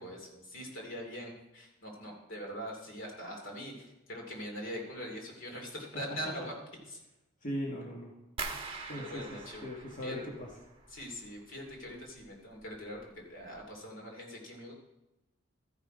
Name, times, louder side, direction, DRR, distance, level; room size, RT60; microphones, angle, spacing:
voice 1, 0.0-6.5 6.9-7.0 8.9-9.7 10.0-10.1 10.9-14.7, equal, 65° left, 0 dB, 2.7 m, -43 dB
voice 2, 7.4-8.1 8.9-10.5, equal, 40° left, -3 dB, 1.6 m, -39 dB
sound 1, 8.4-11.3 11.5-12.2 12.6-13.0 13.4-13.6, right 4 dB, 30° right, 1.2 m, -43 dB
13.5 x 5.9 x 5.0 m, 0.98 s
head